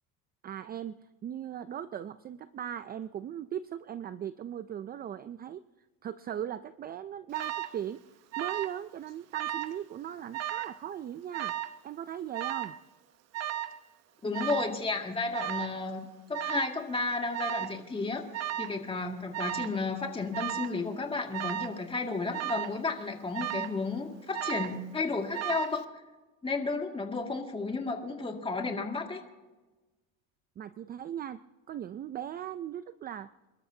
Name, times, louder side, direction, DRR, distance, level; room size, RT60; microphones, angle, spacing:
voice 1, 0.4-5.6 6.0-8.0 8.4-11.5 11.8-12.8 30.6-31.4 31.7-33.3, right 10 dB, 25° right, 13 dB, 0.4 m, -38 dB
Alarm, 7.3-7.8 8.3-8.8 9.1-9.8 10.3-10.8 11.3-11.8 12.3-12.8 13.3-13.8 14.3-14.8 15.3-15.8 16.3-16.8 17.3-17.8 18.3-18.8 19.3-19.8 20.3-20.8 21.3-21.8 22.3-22.8 23.3-23.8 24.3-24.8 25.3-25.8, right 12 dB, 45° right, 0.9 m, -35 dB
voice 2, 14.2-18.2 18.6-25.8 26.4-29.2, left 3 dB, 15° left, 2 dB, 2.2 m, -33 dB
28.5 x 13.0 x 2.8 m, 1.2 s
cardioid pair, 135°, 36 cm